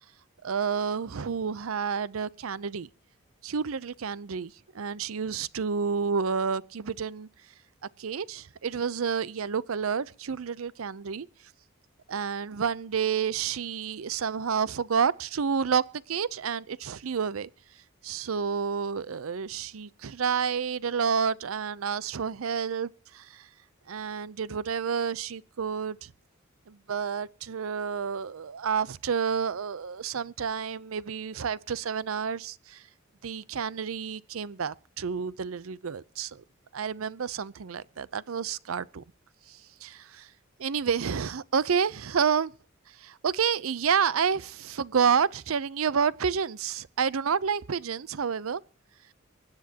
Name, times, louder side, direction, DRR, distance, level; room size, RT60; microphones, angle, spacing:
voice 1, 0.4-2.9 3.4-7.3 8.0-11.3 12.1-17.5 18.0-23.5 23.9-26.1 26.7-32.8 33.2-36.4 36.7-39.0 39.5-40.3 40.6-42.5 43.0-48.6, right 6 dB, 85° right, 0.6 m, -29 dB
24.5 x 9.7 x 2.9 m
head